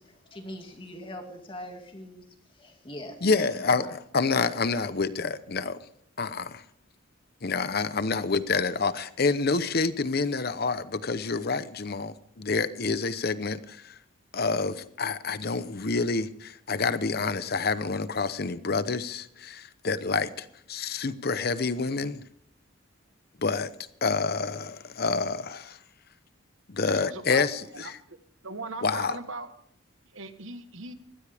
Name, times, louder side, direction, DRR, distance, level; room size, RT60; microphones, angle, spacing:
voice 1, 0.3-3.9, left 1 dB, 25° left, 2.2 m, -42 dB
voice 2, 3.2-5.8 6.2-6.6 7.4-14.0 14.3-22.2 23.4-23.7 24.0-25.8 26.7-28.0 28.8-29.2, left 4 dB, 50° left, 0.8 m, -28 dB
voice 3, 26.8-27.4 27.7-28.2 28.4-29.5 30.1-30.9, right 3 dB, 75° right, 1.3 m, -39 dB
21.0 x 15.0 x 3.5 m
head